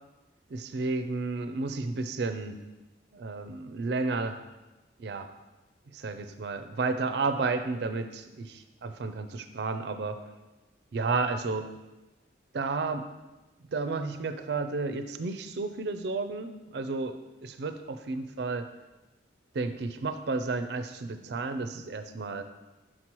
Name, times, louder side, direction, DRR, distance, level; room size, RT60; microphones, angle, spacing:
voice 1, 0.5-2.6 3.1-4.4 5.0-5.3 5.9-10.2 10.9-11.7 12.5-13.1 13.7-17.2 17.6-17.7 18.1-18.7 19.5-22.4, right 3 dB, 60° right, 9 dB, 0.4 m, -32 dB
6.0 x 6.0 x 3.0 m, 1.1 s
head